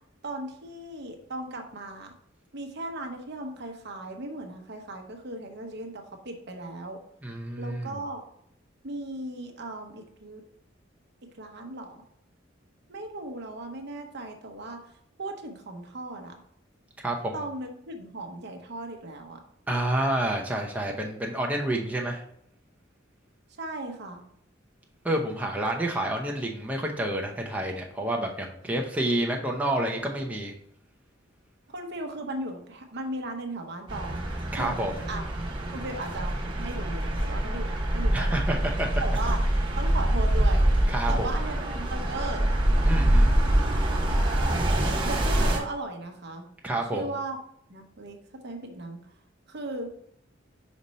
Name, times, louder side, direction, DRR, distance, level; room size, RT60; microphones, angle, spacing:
voice 1, 0.2-2.1 2.5-7.0 7.6-8.2 8.8-10.4 11.4-12.0 12.9-14.8 15.2-16.4 17.3-19.4 23.6-24.2 31.7-34.3 34.6-34.7 35.1-35.2 35.7-36.3 36.6-38.6 39.0-39.4 39.8-40.7 41.1-42.4 44.7-46.5 46.9-47.4 47.7-48.2 48.4-49.0 49.5-49.9, right 2 dB, 60° right, 4 dB, 0.9 m, -37 dB
voice 2, 7.2-8.0 17.0-17.4 19.7-22.2 25.0-30.5 34.5-35.0 38.1-38.9 40.9-41.3 42.8-43.3 46.6-47.1, right 1 dB, 10° right, 0 dB, 0.6 m, -29 dB
sound 1, 33.9-45.6, right 1 dB, 25° right, 1.1 m, -25 dB
5.3 x 4.3 x 4.1 m, 0.69 s
head